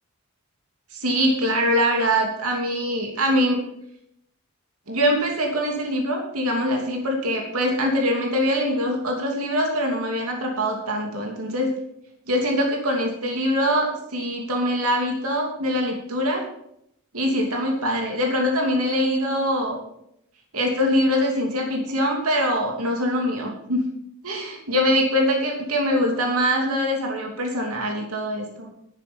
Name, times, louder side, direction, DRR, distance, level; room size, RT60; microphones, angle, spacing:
voice 1, 0.9-3.6 4.9-11.7 12.3-16.4 17.1-19.8 20.5-23.8 24.2-28.7, equal, 85° right, 1 dB, 2.9 m, -23 dB
12.0 x 9.2 x 5.6 m, 0.76 s
head